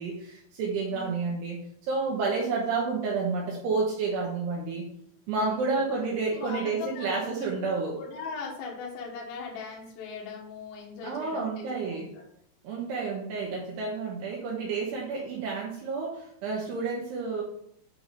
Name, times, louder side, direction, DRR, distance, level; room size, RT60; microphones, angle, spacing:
voice 1, 0.0-4.9 5.3-8.0 11.0-12.1 12.6-17.4, right 4 dB, 75° right, -3 dB, 3.1 m, -30 dB
voice 2, 5.4-5.8 6.3-12.2, left 4 dB, 65° left, -1 dB, 3.0 m, -40 dB
9.0 x 4.8 x 3.9 m, 0.68 s
omnidirectional pair, 5.1 m